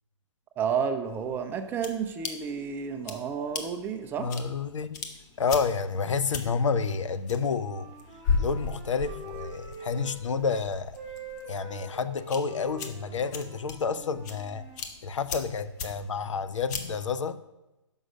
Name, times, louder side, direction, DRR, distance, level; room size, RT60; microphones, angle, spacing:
voice 1, 0.6-4.3, right 7 dB, 15° right, 7 dB, 0.4 m, -31 dB
sound 1, 1.0-17.1, left 5 dB, 35° left, 0.8 m, -38 dB
voice 2, 4.2-5.0 5.4-7.9 8.4-11.0 11.5-14.7 15.0-17.4, left 5 dB, 80° left, 13 dB, 0.5 m, -29 dB
Wind instrument woodwind instrument, 7.2-10.6 10.9-14.8, right 2 dB, 30° right, 1.3 m, -45 dB
6.2 x 5.5 x 6.3 m, 1.0 s
hypercardioid pair, 135°, 16 cm